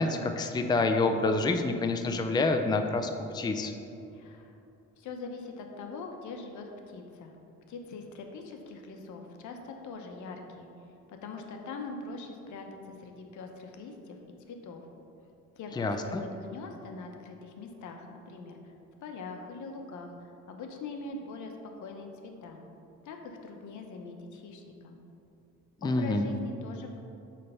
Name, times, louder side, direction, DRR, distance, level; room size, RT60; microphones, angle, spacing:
voice 1, 0.0-3.7 15.8-16.2 25.8-26.2, left 3 dB, 15° left, 6 dB, 0.4 m, -27 dB
voice 2, 4.1-4.6 5.0-7.3 7.7-10.7 11.1-12.7 13.0-14.2 14.5-14.9 15.5-18.7 19.0-21.6 21.8-22.6 23.0-25.0 25.8-27.0, left 3 dB, 75° left, 3 dB, 0.9 m, -42 dB
8.4 x 3.4 x 5.4 m, 2.7 s
cardioid pair, 90°, 30 cm